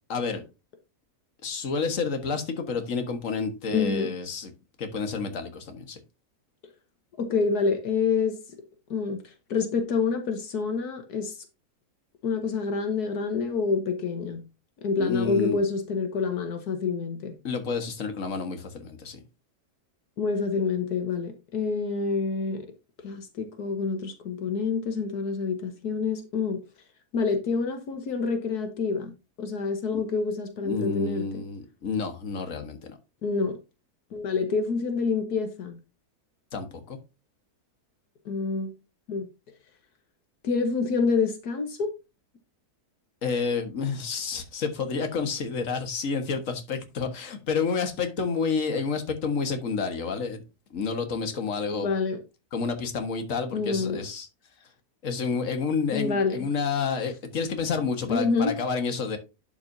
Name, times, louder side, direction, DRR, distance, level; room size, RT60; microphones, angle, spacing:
voice 1, 0.1-0.4 1.4-4.5 4.8-6.0 15.0-15.6 17.4-19.2 29.9-30.0 30.6-33.0 36.5-37.0 43.2-50.4 50.7-51.9 52.5-54.3 55.0-59.2, left 5 dB, 55° left, 1.8 m, -29 dB
voice 2, 3.7-4.1 7.2-8.4 8.9-11.4 12.2-14.4 14.8-17.4 20.2-22.7 23.0-26.6 27.1-29.1 29.4-31.4 33.2-33.6 34.1-35.8 38.3-38.7 39.1-39.3 40.4-41.9 51.8-52.2 53.5-54.1 55.9-56.5 58.1-58.5, left 4 dB, 80° left, 1.7 m, -27 dB
11.5 x 6.0 x 2.7 m
omnidirectional pair, 1.6 m